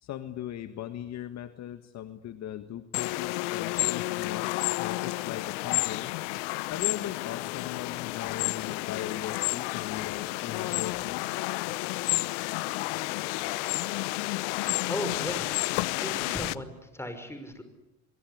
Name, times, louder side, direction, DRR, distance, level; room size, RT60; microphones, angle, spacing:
voice 1, 0.0-6.1 6.7-11.3, left 11 dB, 50° left, 10 dB, 1.7 m, -39 dB
sound 1, 2.9-16.6, left 22 dB, 80° left, 0.9 m, -31 dB
voice 2, 14.9-15.5 16.0-17.6, left 1 dB, 5° left, 9 dB, 5.7 m, -36 dB
24.5 x 23.0 x 9.8 m, 0.92 s
supercardioid pair, 95°, 36 cm